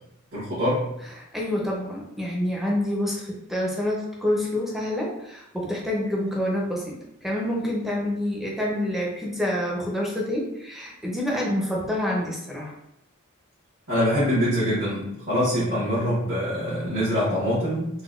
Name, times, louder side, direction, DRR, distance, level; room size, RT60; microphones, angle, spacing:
voice 1, 0.3-0.9 13.9-17.9, equal, 55° right, -10 dB, 1.2 m, -24 dB
voice 2, 1.3-12.7, left 1 dB, ahead, -3 dB, 0.6 m, -27 dB
3.8 x 2.2 x 2.4 m, 0.84 s
head